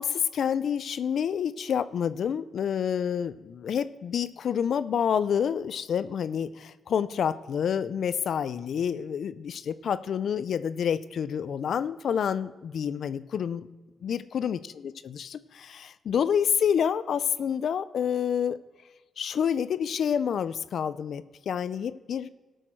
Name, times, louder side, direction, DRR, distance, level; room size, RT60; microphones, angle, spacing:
voice 1, 0.0-13.7 14.0-18.6 19.2-22.3, left 8 dB, 65° left, 15 dB, 0.3 m, -28 dB
17.5 x 6.4 x 4.5 m, 1.2 s
wide cardioid pair, 155°, 0 cm